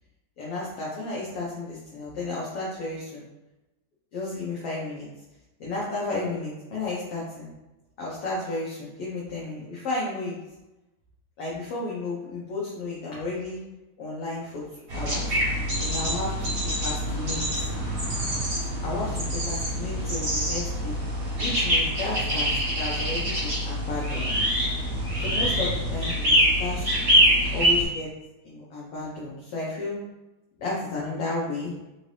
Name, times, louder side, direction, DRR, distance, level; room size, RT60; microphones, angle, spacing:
voice 1, 0.4-3.2 4.1-5.1 5.6-7.5 8.0-10.4 11.4-13.6 14.0-14.6 14.9-15.3 15.8-17.4 18.8-21.0 21.4-22.5 22.7-24.3 25.2-26.8 27.5-28.1 28.4-30.0 30.6-31.7, left 2 dB, 85° left, -6 dB, 1.3 m, -33 dB
sound 1, 14.9-27.8, equal, 45° right, 1.5 m, -25 dB
4.9 x 2.7 x 3.2 m, 0.99 s
omnidirectional pair, 3.7 m